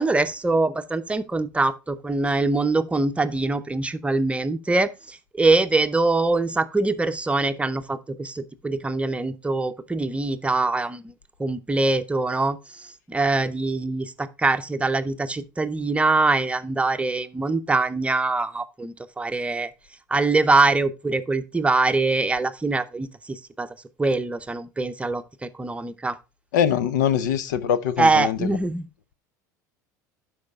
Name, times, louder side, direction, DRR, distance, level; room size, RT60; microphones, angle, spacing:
voice 1, 0.0-11.0 11.4-12.6 13.1-19.7 20.1-23.7 24.0-26.2 28.0-28.9, right 3 dB, 15° right, 0.7 m, -23 dB
voice 2, 26.5-28.5, left 9 dB, 80° left, 0.7 m, -23 dB
11.5 x 4.8 x 3.5 m
hypercardioid pair, 85°, 10 cm